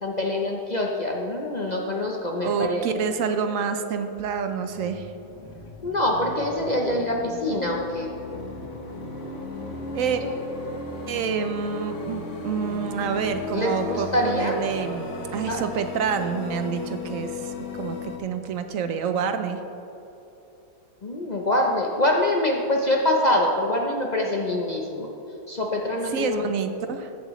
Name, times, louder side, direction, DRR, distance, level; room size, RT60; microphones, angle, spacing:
voice 1, 0.0-2.8 5.8-8.1 10.2-10.3 13.5-14.5 15.5-15.6 21.0-25.1 25.5-26.5, left 1 dB, 40° left, 0 dB, 0.6 m, -25 dB
voice 2, 2.4-5.1 9.9-10.2 11.1-19.6 26.1-27.1, right 6 dB, 70° right, 8 dB, 1.0 m, -28 dB
sound 1, 4.1-18.2, left 3 dB, 55° left, 1.3 m, -36 dB
14.5 x 7.5 x 3.1 m, 3.0 s
omnidirectional pair, 1.5 m